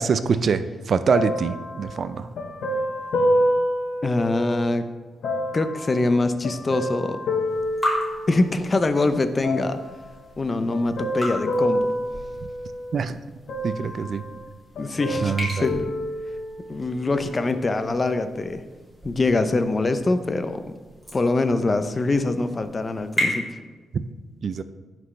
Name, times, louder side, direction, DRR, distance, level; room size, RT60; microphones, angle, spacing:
voice 1, 0.0-2.3 12.9-13.2 13.6-14.2 15.2-15.7 23.9-24.0 24.4-24.6, right 5 dB, 50° right, 12 dB, 0.5 m, -24 dB
sound 1, 1.1-4.7 5.2-8.7 9.4-10.1 10.7-13.0 13.5-14.5 14.7-16.8 17.5-17.6, equal, 75° left, 1.1 m, -28 dB
voice 2, 4.0-4.8 5.5-7.2 8.3-9.8 10.4-11.9 14.8-15.9 16.7-18.6 19.0-20.6 21.1-23.4, left 2 dB, 25° left, 9 dB, 0.7 m, -23 dB
sound 2, 7.5-23.3, equal, ahead, 3.2 m, -36 dB
17.0 x 6.0 x 3.3 m, 1.3 s
cardioid pair, 125°, 0 cm